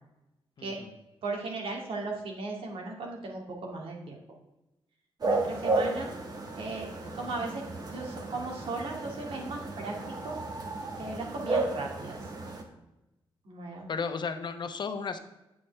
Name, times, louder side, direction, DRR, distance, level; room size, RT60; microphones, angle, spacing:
voice 1, 0.6-0.9 6.0-6.1 13.9-15.2, left 5 dB, 55° left, 9 dB, 0.9 m, -34 dB
voice 2, 1.2-4.2 5.2-6.1 6.6-6.9 7.1-10.0 10.2-10.4 11.0-12.2 13.4-13.9, right 3 dB, 75° right, 0 dB, 2.3 m, -37 dB
sound 1, 5.2-12.6, right 2 dB, 45° right, 1.7 m, -33 dB
8.7 x 8.6 x 3.5 m, 0.95 s
cardioid pair, 95°, 9 cm